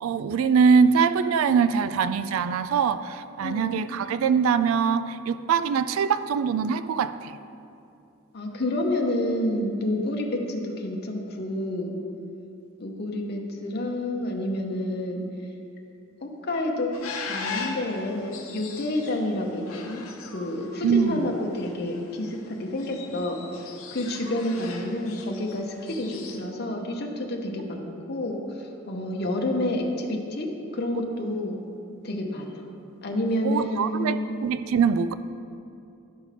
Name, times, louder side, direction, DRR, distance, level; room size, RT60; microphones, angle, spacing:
voice 1, 0.0-7.3 20.8-21.2 33.4-35.1, right 6 dB, 75° right, 13 dB, 0.3 m, -23 dB
voice 2, 3.4-3.8 8.3-12.0 12.8-15.3 16.2-16.9 17.2-20.0 20.3-31.6 32.0-32.6 33.0-34.4, left 1 dB, 50° left, 1 dB, 0.8 m, -29 dB
sound 1, 16.9-26.4, left 5 dB, 85° left, 0.9 m, -40 dB
12.0 x 5.1 x 3.3 m, 2.6 s
head